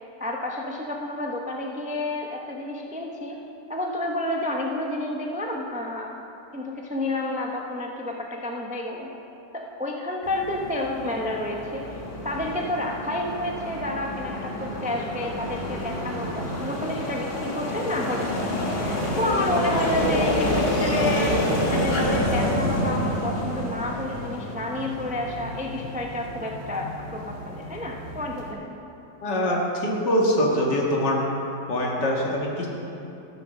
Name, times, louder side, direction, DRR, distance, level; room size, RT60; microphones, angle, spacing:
voice 1, 0.2-3.4 3.7-6.1 6.5-9.1 9.5-12.0 12.2-28.7, left 1 dB, 10° right, 0 dB, 0.3 m, -30 dB
sound 1, 10.2-28.5, left 1 dB, 35° left, 1.5 m, -28 dB
voice 2, 29.2-31.2 31.7-32.7, equal, 75° left, -2 dB, 2.4 m, -23 dB
13.5 x 7.0 x 6.3 m, 2.9 s
omnidirectional pair, 1.9 m